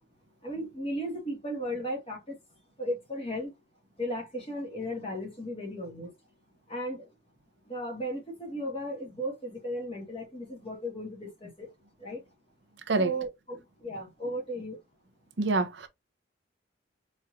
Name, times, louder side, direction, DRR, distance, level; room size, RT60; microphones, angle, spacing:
voice 1, 0.4-2.3 2.8-3.5 4.0-6.1 6.7-7.1 7.7-11.7 12.0-12.2 13.0-14.8, equal, 30° left, 1.8 m, -35 dB
voice 2, 15.4-15.9, right 3 dB, 65° right, 0.7 m, -26 dB
4.3 x 3.0 x 2.5 m
head